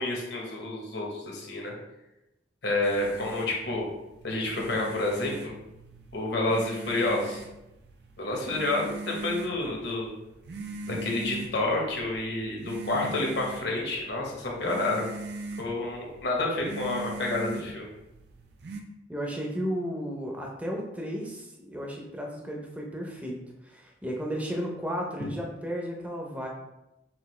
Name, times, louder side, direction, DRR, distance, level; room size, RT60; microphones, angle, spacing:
voice 1, 0.0-1.7 2.6-3.9 4.2-5.5 6.1-7.4 8.2-10.1 10.9-15.1 15.6-17.9, left 2 dB, 60° left, -1 dB, 1.1 m, -29 dB
sound 1, 2.8-18.8, right 2 dB, 55° right, 0.5 m, -41 dB
voice 2, 19.1-23.4 23.6-26.5, equal, 5° right, -1 dB, 0.6 m, -34 dB
5.8 x 2.6 x 3.2 m, 0.92 s
head